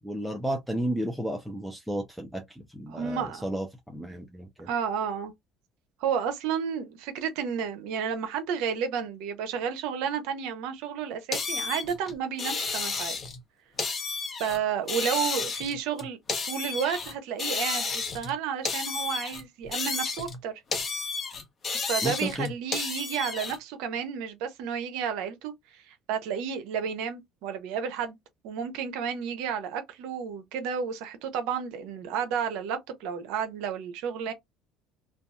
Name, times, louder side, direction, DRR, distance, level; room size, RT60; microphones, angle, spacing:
voice 1, 0.0-4.7 22.0-22.5, equal, ahead, 0.6 m, -33 dB
voice 2, 2.9-3.4 4.6-5.3 6.0-13.2 14.4-16.2 16.4-20.6 21.8-28.2 28.4-34.3, right 7 dB, 75° right, 0.7 m, -31 dB
sound 1, 11.3-13.4 13.8-14.6 14.9-17.1 17.4-18.3 18.6-20.4 20.7-23.6, left 4 dB, 35° left, 0.9 m, -32 dB
2.7 x 2.3 x 2.3 m
supercardioid pair, 90°, 0 cm